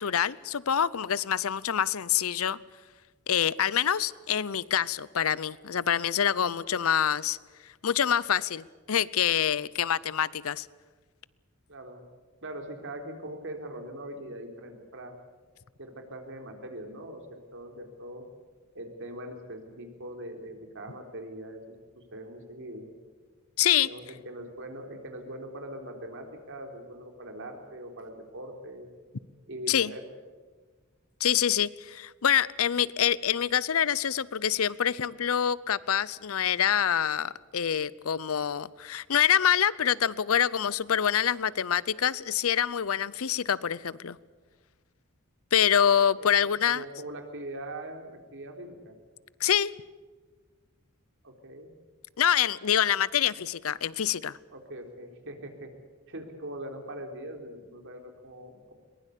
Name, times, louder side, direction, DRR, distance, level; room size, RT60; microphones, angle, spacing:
voice 1, 0.0-2.6 3.3-7.4 7.8-10.7 23.6-23.9 29.7-29.9 31.2-44.2 45.5-46.8 49.4-49.7 52.2-54.4, left 9 dB, 70° left, 20 dB, 0.6 m, -26 dB
voice 2, 11.7-12.0 12.4-15.1 15.8-18.2 18.7-22.9 23.8-28.9 29.5-30.0 46.2-49.0 51.2-51.7 54.5-55.7 56.1-58.7, right 1 dB, 60° right, 4 dB, 3.8 m, -42 dB
22.0 x 20.0 x 8.4 m, 1.4 s
head